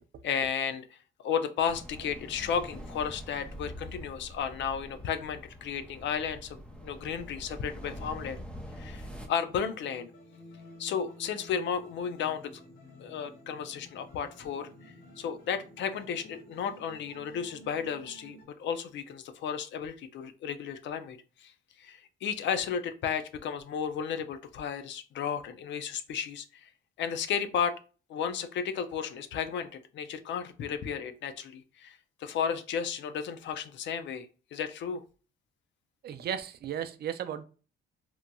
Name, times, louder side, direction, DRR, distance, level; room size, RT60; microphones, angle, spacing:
voice 1, 0.2-1.0 1.2-8.4 8.8-10.1 10.8-12.5 13.0-21.5 21.8-26.7 27.0-27.7 28.1-35.0, left 7 dB, 65° left, 9 dB, 0.4 m, -33 dB
sound 1, 1.6-9.3, equal, 5° left, 0.5 m, -45 dB
sound 2, 9.4-18.4, equal, 85° left, 1.2 m, -52 dB
voice 2, 36.0-37.4, right 9 dB, 55° right, 11 dB, 0.4 m, -35 dB
2.9 x 2.5 x 2.2 m, 0.36 s
cardioid pair, 90°, 20 cm